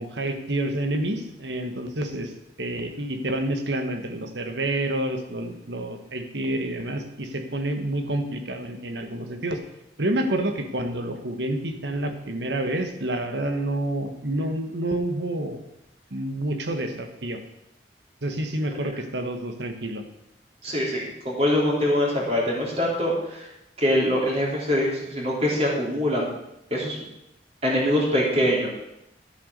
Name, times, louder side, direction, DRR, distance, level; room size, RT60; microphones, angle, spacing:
voice 1, 0.0-2.3 2.6-9.6 10.0-15.6 16.1-17.4 18.2-20.0, right 1 dB, 75° right, 6 dB, 1.5 m, -28 dB
voice 2, 20.6-23.5 23.8-26.3 26.7-27.0 27.6-28.7, left 1 dB, 35° right, -3 dB, 3.4 m, -23 dB
11.5 x 8.1 x 6.8 m, 0.84 s
head